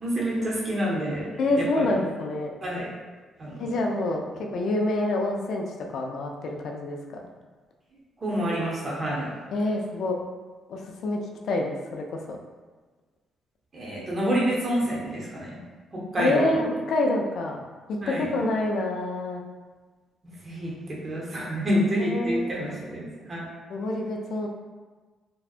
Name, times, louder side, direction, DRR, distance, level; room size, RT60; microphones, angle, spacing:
voice 1, 0.0-1.3 1.5-2.0 2.6-2.9 3.4-3.7 8.2-9.3 13.7-15.6 15.9-16.6 18.0-18.3 20.4-23.5, equal, 35° right, -5 dB, 0.7 m, -28 dB
voice 2, 1.4-2.5 3.6-4.2 4.5-5.6 5.9-7.2 9.5-10.2 10.7-12.4 16.2-17.6 17.9-19.4 22.1-22.8 23.7-24.5, left 2 dB, 70° left, 1 dB, 0.3 m, -27 dB
2.6 x 2.2 x 2.4 m, 1.3 s
cardioid pair, 90°, 0 cm